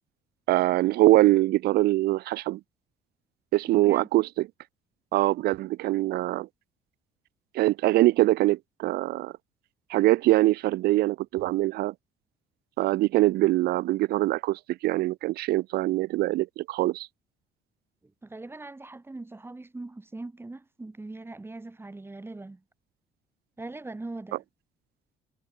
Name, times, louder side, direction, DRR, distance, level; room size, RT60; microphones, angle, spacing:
voice 1, 0.5-2.6 3.5-4.5 5.1-6.5 7.5-9.3 9.9-11.9 12.8-17.1, right 17 dB, 70° right, 0.5 m, -23 dB
voice 2, 3.7-4.1 18.0-22.6 23.6-24.4, right 2 dB, 15° right, 3.3 m, -41 dB
cardioid pair, 110°, 17 cm